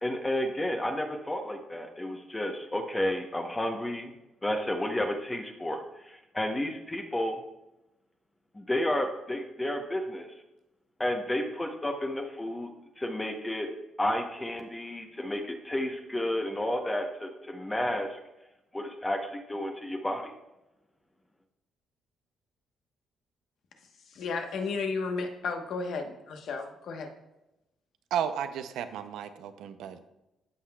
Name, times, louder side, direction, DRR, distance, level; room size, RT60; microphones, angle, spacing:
voice 1, 0.0-4.1 4.4-7.4 8.5-10.3 11.0-12.7 13.0-13.7 14.0-18.2 18.7-20.3, left 1 dB, 15° left, 3 dB, 0.8 m, -31 dB
voice 2, 24.1-27.1, left 4 dB, 70° left, 4 dB, 1.1 m, -33 dB
voice 3, 28.1-30.1, right 9 dB, 85° right, 10 dB, 0.5 m, -33 dB
14.0 x 5.7 x 2.3 m, 0.95 s
cardioid pair, 90°, 0 cm